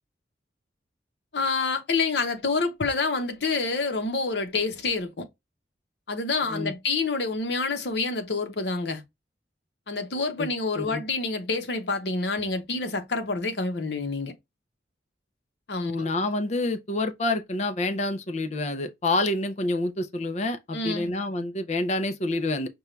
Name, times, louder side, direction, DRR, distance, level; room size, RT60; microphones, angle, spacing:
voice 1, 1.3-5.3 6.1-9.0 9.9-14.3 15.7-16.1 20.7-21.1, left 3 dB, 65° left, 0.8 m, -27 dB
voice 2, 15.8-22.7, left 2 dB, 40° left, 0.5 m, -28 dB
5.3 x 2.3 x 3.1 m
head